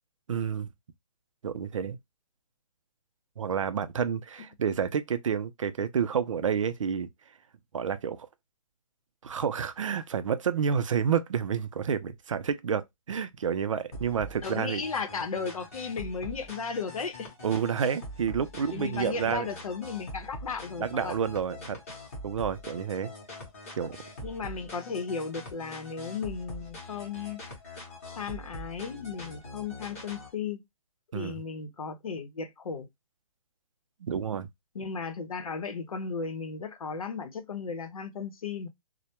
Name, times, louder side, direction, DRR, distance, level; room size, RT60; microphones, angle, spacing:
voice 1, 0.3-0.7 1.4-2.0 3.4-7.1 7.7-8.3 9.2-14.8 17.4-19.5 20.8-21.8 22.2-23.1 23.8-24.0 31.1-31.4 34.0-34.5, right 7 dB, 60° right, 0.4 m, -29 dB
sound 1, 13.9-30.3, left 1 dB, 25° left, 0.7 m, -43 dB
voice 2, 14.4-17.3 18.7-21.1 24.2-27.4 28.2-30.6 31.1-32.9 34.7-38.7, left 5 dB, 75° left, 0.7 m, -35 dB
2.2 x 2.1 x 2.8 m
hypercardioid pair, 175°, 18 cm